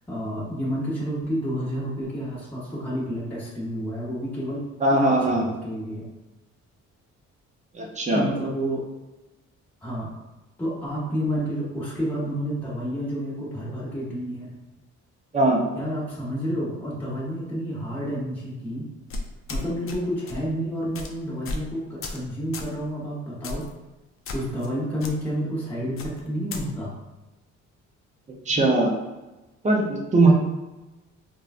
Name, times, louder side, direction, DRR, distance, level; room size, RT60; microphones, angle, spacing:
voice 1, 0.1-4.6 4.9-6.0 8.1-8.8 9.8-10.1 10.6-14.5 15.7-18.9 19.5-23.7 24.3-26.9, equal, 5° left, -9 dB, 1.0 m, -30 dB
voice 2, 4.8-5.5 7.7-8.2 15.3-15.6 28.5-28.9 29.6-30.3, right 2 dB, 25° right, -1 dB, 0.6 m, -20 dB
sound 1, 19.1-20.0 20.3-20.5 20.9-21.1 21.5-21.7 22.0-22.2 22.5-22.7 23.4-23.7 24.3-24.7 25.0-25.1 26.0-26.6, left 2 dB, 45° left, 0.4 m, -33 dB
3.0 x 2.3 x 2.4 m, 1.1 s
cardioid pair, 90°, 30 cm